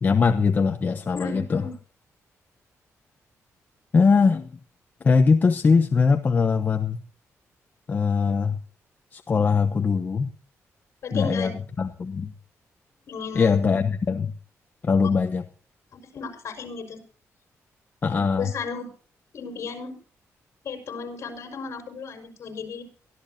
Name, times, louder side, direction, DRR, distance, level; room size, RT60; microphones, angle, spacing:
voice 1, 0.0-1.7 3.9-4.6 5.0-7.0 7.9-8.6 9.1-10.3 11.1-11.5 11.8-12.3 13.3-14.3 14.8-15.5 18.0-18.5, left 5 dB, 35° left, 6 dB, 1.0 m, -21 dB
voice 2, 1.1-1.7 11.0-11.5 13.1-13.6 15.9-17.0 18.4-18.9 19.3-20.0 20.6-22.8, left 5 dB, 55° left, 5 dB, 5.3 m, -34 dB
23.5 x 14.5 x 2.8 m, 0.40 s
wide cardioid pair, 165°, 5 cm